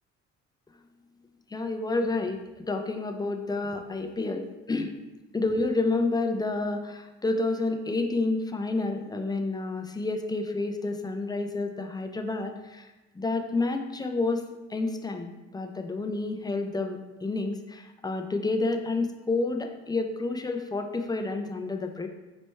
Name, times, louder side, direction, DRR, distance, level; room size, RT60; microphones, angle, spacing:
voice 1, 1.5-2.4 2.7-4.9 5.3-12.9 13.1-14.4 14.7-22.1, left 3 dB, 15° left, 5 dB, 0.4 m, -29 dB
4.2 x 3.2 x 3.2 m, 1.1 s
cardioid pair, 90°, 30 cm